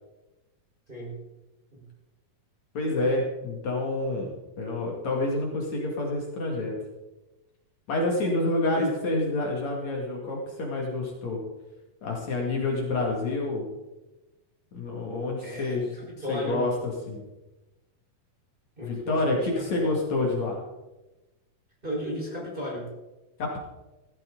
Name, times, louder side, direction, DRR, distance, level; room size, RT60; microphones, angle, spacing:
voice 1, 2.8-4.3 4.6-6.8 7.9-11.4 12.0-13.7 14.7-17.2 18.8-20.6 23.4-23.6, left 2 dB, 60° left, -1 dB, 3.5 m, -28 dB
voice 2, 15.4-15.8 16.2-16.6 18.8-19.9 21.8-22.9, equal, 15° right, -3 dB, 5.0 m, -34 dB
16.0 x 15.0 x 3.9 m, 1.0 s
omnidirectional pair, 3.7 m